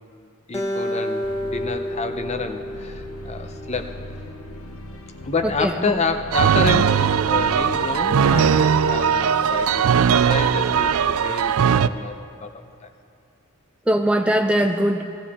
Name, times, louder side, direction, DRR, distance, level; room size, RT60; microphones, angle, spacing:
voice 1, 0.5-4.0 5.2-12.9, left 3 dB, 30° left, 7 dB, 0.7 m, -29 dB
Acoustic guitar, 0.5-3.9, left 1 dB, 15° left, 1.2 m, -30 dB
sound 1, 1.2-11.3, left 1 dB, 80° left, 0.9 m, -39 dB
voice 2, 5.4-6.0 13.9-15.2, equal, 5° right, 5 dB, 0.4 m, -21 dB
sound 2, 6.3-11.9, right 7 dB, 80° right, 0.4 m, -19 dB
19.0 x 14.5 x 3.6 m, 2.6 s
head